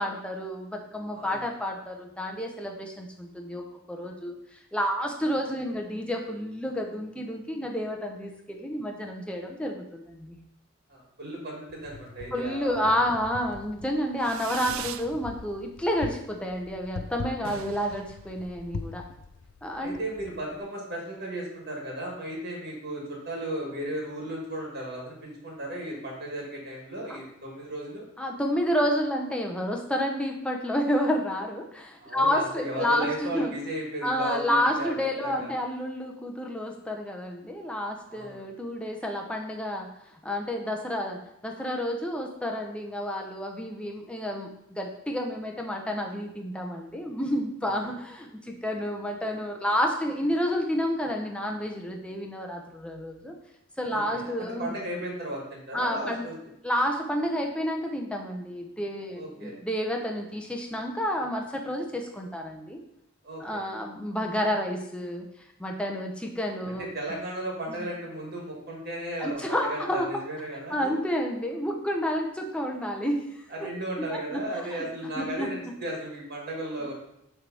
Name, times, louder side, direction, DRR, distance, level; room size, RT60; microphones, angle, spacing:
voice 1, 0.0-10.4 12.3-19.0 19.6-20.0 28.2-33.5 34.0-40.0 40.2-53.3 53.8-54.8 55.7-56.3 56.6-62.8 63.4-65.3 65.6-66.9 67.7-67.9 69.2-70.2 70.7-73.7 74.1-75.5, equal, 5° left, 1 dB, 0.7 m, -30 dB
voice 2, 10.9-12.8 17.4-17.6 19.8-28.1 32.0-34.9 35.2-35.5 38.1-38.4 47.8-48.0 53.9-56.3 59.2-59.6 63.2-63.7 66.8-70.9 73.5-76.9, right 1 dB, 50° right, -2 dB, 1.9 m, -35 dB
Wind, 11.7-20.6, left 4 dB, 60° left, 0.3 m, -43 dB
Fireworks, 14.2-15.1 15.5-16.0 16.3-16.4 16.6-16.8 17.0-17.1 17.3-19.0, right 9 dB, 80° right, 0.4 m, -40 dB
6.5 x 3.4 x 6.0 m, 0.78 s
head